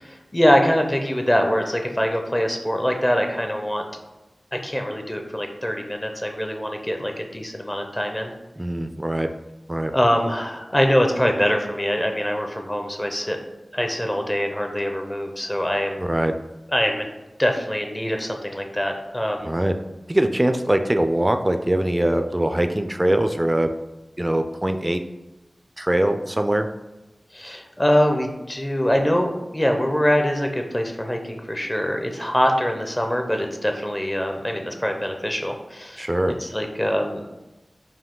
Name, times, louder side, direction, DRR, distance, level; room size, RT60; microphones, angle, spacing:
voice 1, 0.0-3.8 4.5-8.3 9.9-13.4 13.7-16.0 16.7-17.1 17.4-19.5 27.3-36.1 36.4-37.2, equal, 20° left, 3 dB, 0.6 m, -23 dB
voice 2, 8.6-9.3 9.7-9.9 16.0-16.3 19.4-19.8 20.1-23.7 24.2-25.0 25.8-26.7 36.0-36.3, right 1 dB, 25° right, 7 dB, 0.3 m, -22 dB
4.5 x 2.6 x 3.7 m, 1.1 s
cardioid pair, 40°, 0 cm